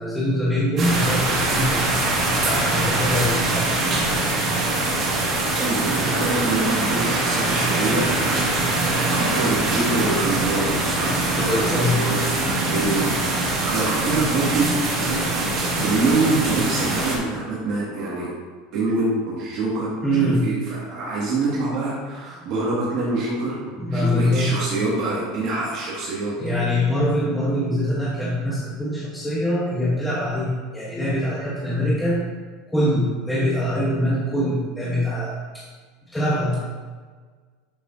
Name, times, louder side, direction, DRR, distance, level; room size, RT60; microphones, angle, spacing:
voice 1, 0.0-1.9 2.4-3.8 8.0-8.1 11.3-12.0 20.0-20.4 23.8-24.5 26.4-32.2 32.7-35.6 36.1-36.6, equal, 5° left, -8 dB, 1.1 m, -23 dB
sound 1, 0.8-17.2, right 2 dB, 30° right, 2.1 m, -23 dB
voice 2, 5.4-8.1 9.1-13.1 13.6-14.7 15.8-18.3 18.7-19.9 20.2-26.3, right 2 dB, 45° right, -6 dB, 2.0 m, -25 dB
11.5 x 6.0 x 2.7 m, 1.5 s
supercardioid pair, 170°, 0 cm